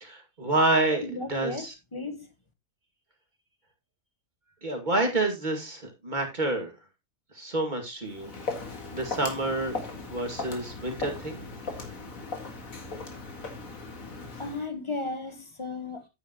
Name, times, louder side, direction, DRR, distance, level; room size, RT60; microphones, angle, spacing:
voice 1, 0.0-1.7 4.6-6.7 7.3-8.3 8.6-9.8 10.1-11.5, right 2 dB, 35° right, 2.5 m, -28 dB
voice 2, 1.0-2.3 14.4-16.1, left 3 dB, 20° left, 1.3 m, -35 dB
Walk footsteps, 8.1-14.7, left 3 dB, 90° left, 2.3 m, -38 dB
10.0 x 9.3 x 3.0 m
omnidirectional pair, 1.4 m